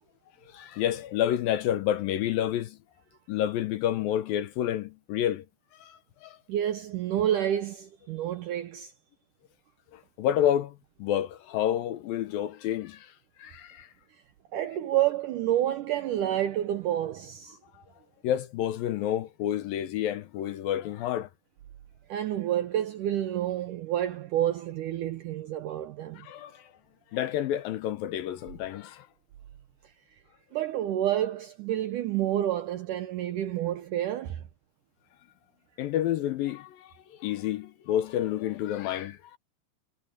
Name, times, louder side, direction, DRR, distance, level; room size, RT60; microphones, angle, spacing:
voice 1, 0.5-2.8 3.3-5.5 5.8-6.4 9.9-13.1 13.4-13.9 18.2-21.3 26.2-26.7 27.1-29.1 35.8-39.4, left 11 dB, 70° left, 2.4 m, -29 dB
voice 2, 6.5-8.9 14.5-17.6 22.1-26.3 30.5-34.4, right 12 dB, 75° right, 1.9 m, -29 dB
omnidirectional pair, 4.7 m